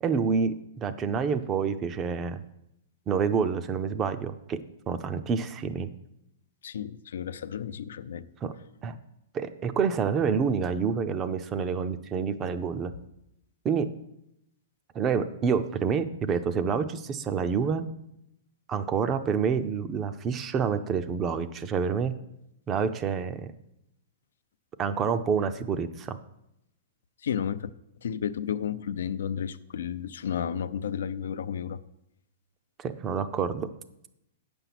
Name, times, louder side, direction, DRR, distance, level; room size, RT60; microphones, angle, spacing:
voice 1, 0.0-2.4 3.1-4.6 4.9-5.9 8.4-8.5 8.8-9.0 9.3-12.9 13.6-13.9 14.9-17.8 18.7-22.1 22.7-23.5 24.8-26.2 32.8-33.7, right 6 dB, 20° right, 0.5 m, -28 dB
voice 2, 6.6-8.3 27.2-27.7 28.0-31.8, left 8 dB, 85° left, 0.5 m, -32 dB
8.9 x 7.0 x 5.9 m
hypercardioid pair, 165°, 0 cm